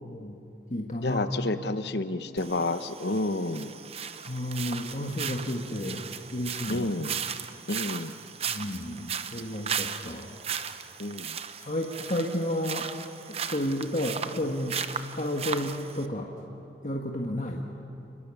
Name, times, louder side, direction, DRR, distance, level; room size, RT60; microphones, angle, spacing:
voice 1, 0.0-0.4 0.7-1.3 4.3-6.0 6.3-6.9 8.5-10.3 11.6-12.9 13.3-14.7 15.1-16.3 16.8-17.6, left 1 dB, 40° left, 0 dB, 1.6 m, -32 dB
voice 2, 1.0-3.7 6.7-7.1 7.7-8.1 11.0-11.4, left 2 dB, 65° left, 10 dB, 1.0 m, -30 dB
sound 1, 2.4-16.1, right 7 dB, 35° right, 0.8 m, -36 dB
29.5 x 21.5 x 7.2 m, 2.8 s
head